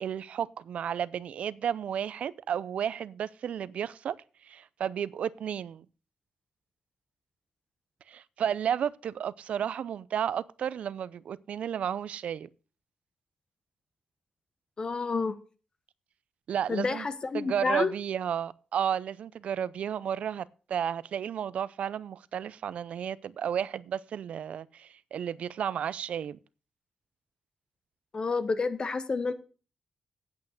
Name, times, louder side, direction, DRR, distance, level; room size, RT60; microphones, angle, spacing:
voice 1, 0.0-4.2 4.4-5.9 8.1-12.5 16.5-17.1 17.3-26.4, right 8 dB, 80° right, 0.5 m, -32 dB
voice 2, 14.8-15.4 16.7-17.9 28.1-29.3, left 4 dB, 40° left, 1.1 m, -29 dB
8.6 x 8.3 x 6.5 m
cardioid pair, 90°, 2 cm